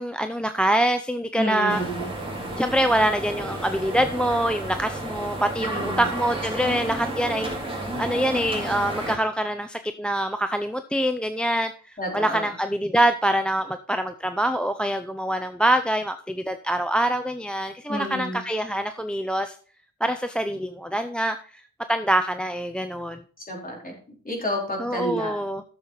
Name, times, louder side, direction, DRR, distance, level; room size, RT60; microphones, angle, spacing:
voice 1, 0.0-1.8 2.6-19.5 20.0-21.6 21.9-23.2 24.8-25.6, right 1 dB, 5° left, 9 dB, 0.6 m, -25 dB
voice 2, 1.4-2.1 5.7-6.1 12.0-12.5 17.9-18.4 23.4-23.9 24.2-25.3, equal, 30° left, -1 dB, 4.3 m, -29 dB
sound 1, 1.7-9.2, right 1 dB, 15° right, 3.3 m, -32 dB
12.5 x 6.9 x 4.0 m, 0.42 s
wide cardioid pair, 95°, 30 cm